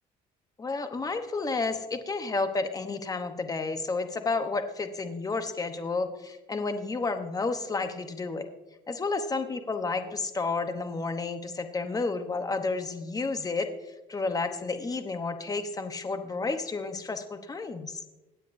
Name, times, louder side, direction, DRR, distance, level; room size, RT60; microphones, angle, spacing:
voice 1, 0.6-8.5 8.9-13.7 14.1-18.0, left 3 dB, 20° left, 8 dB, 0.9 m, -31 dB
16.5 x 9.0 x 2.7 m, 1.1 s
cardioid pair, 110°, 17 cm